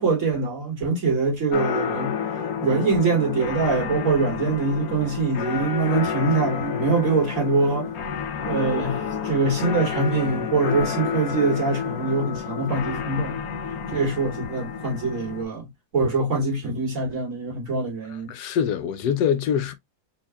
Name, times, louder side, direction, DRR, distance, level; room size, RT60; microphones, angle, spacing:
voice 1, 0.0-2.1 2.6-7.9 8.5-13.4 13.9-18.3, right 3 dB, 50° right, 2.5 m, -24 dB
sound 1, 1.5-15.4, left 7 dB, 65° left, 1.2 m, -30 dB
voice 2, 18.3-19.7, left 8 dB, 90° left, 1.3 m, -24 dB
4.5 x 4.0 x 2.3 m
omnidirectional pair, 1.7 m